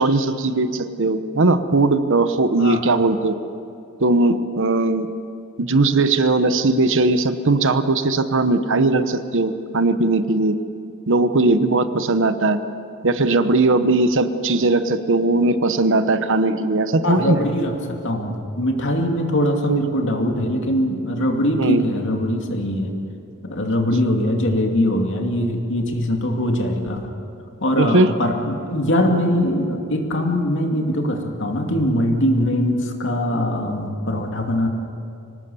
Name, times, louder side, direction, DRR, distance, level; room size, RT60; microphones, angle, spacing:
voice 1, 0.0-3.4 4.0-5.1 5.6-10.5 11.1-12.6 13.0-17.4 19.7-19.8 21.6-21.8 27.8-28.1, right 2 dB, 60° right, 10 dB, 1.0 m, -19 dB
voice 2, 17.0-22.9 23.4-27.0 27.6-34.7, equal, 55° left, 2 dB, 2.5 m, -22 dB
25.0 x 18.5 x 7.0 m, 2.5 s
head